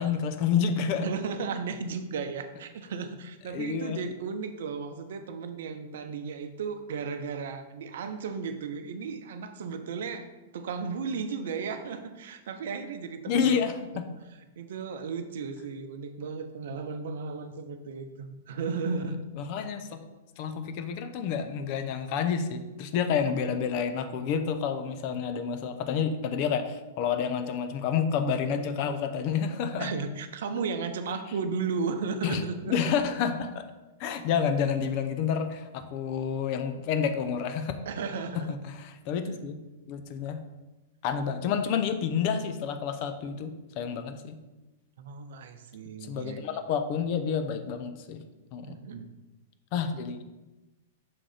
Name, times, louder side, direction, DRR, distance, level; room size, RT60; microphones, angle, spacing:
voice 1, 0.0-1.1 3.5-4.0 13.3-14.0 19.4-20.0 20.4-29.9 32.2-33.6 34.0-37.7 38.3-39.6 39.9-40.4 41.0-44.4 46.0-48.2 48.5-48.8 49.7-50.3, left 7 dB, 50° left, 8 dB, 0.7 m, -29 dB
voice 2, 1.0-10.3 10.5-13.6 13.9-14.1 14.6-19.2 29.8-32.7 37.9-38.5 39.2-39.4 45.0-46.4 48.6-49.1, right 5 dB, 65° right, 8 dB, 0.6 m, -35 dB
6.0 x 3.8 x 4.9 m, 1.1 s
hypercardioid pair, 110°, 0 cm